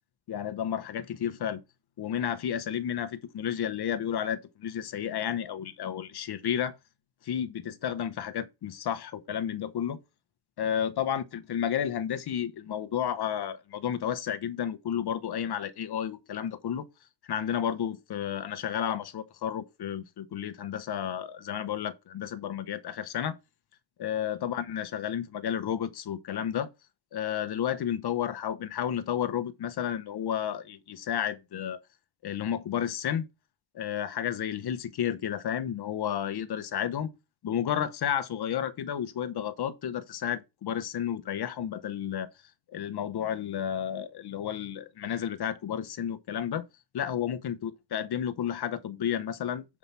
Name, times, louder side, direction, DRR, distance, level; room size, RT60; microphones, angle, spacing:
voice 1, 0.3-1.6 2.0-6.8 7.2-10.0 10.6-16.8 17.3-23.4 24.0-26.7 27.1-31.8 32.2-33.3 33.7-37.1 37.4-42.3 42.7-46.6 46.9-49.8, left 9 dB, 55° left, 1.0 m, -32 dB
7.2 x 4.9 x 5.5 m
wide cardioid pair, 165°, 45 cm